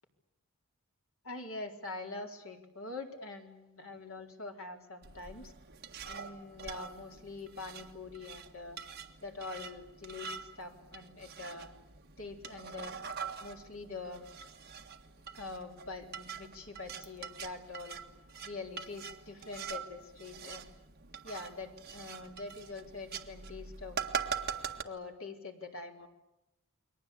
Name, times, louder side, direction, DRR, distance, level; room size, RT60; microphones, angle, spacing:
voice 1, 1.2-5.5 6.1-8.8 9.2-11.7 12.2-12.9 13.4-14.3 15.3-18.0 18.4-20.7 21.2-24.0 24.8-26.1, left 3 dB, 65° left, 3 dB, 4.2 m, -44 dB
sound 1, 5.0-24.8, right 6 dB, 45° right, 1.7 m, -44 dB
29.5 x 22.5 x 8.5 m, 0.91 s
head